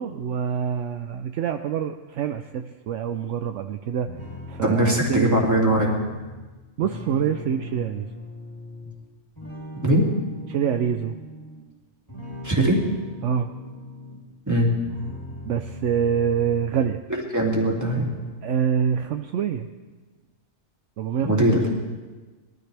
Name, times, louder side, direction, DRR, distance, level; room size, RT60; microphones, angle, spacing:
voice 1, 0.0-4.1 4.5-5.5 6.8-8.1 10.5-11.2 13.2-13.5 15.5-17.0 18.4-19.7 21.0-21.7, right 8 dB, 70° right, 7 dB, 0.9 m, -26 dB
sound 1, 4.1-9.0 9.4-11.6 12.1-14.2 14.7-17.1 17.4-18.3, left 2 dB, 15° left, 3.7 m, -39 dB
voice 2, 4.6-6.0 9.8-10.1 12.4-12.8 14.5-14.7 17.1-18.1 21.2-21.6, right 1 dB, 15° right, -3 dB, 2.5 m, -20 dB
21.5 x 13.5 x 3.4 m, 1.3 s
omnidirectional pair, 1.4 m